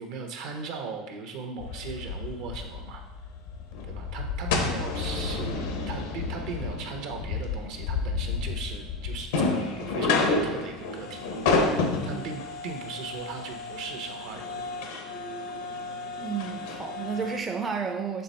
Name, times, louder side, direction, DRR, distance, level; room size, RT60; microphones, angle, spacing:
voice 1, 0.0-3.0 3.9-14.7, right 4 dB, 70° right, 3 dB, 1.0 m, -38 dB
sound 1, 1.6-17.4, left 3 dB, 85° left, 0.9 m, -30 dB
voice 2, 16.2-18.2, right 6 dB, 25° right, 3 dB, 0.5 m, -31 dB
6.9 x 3.5 x 4.2 m, 1.0 s
supercardioid pair, 110°, 0 cm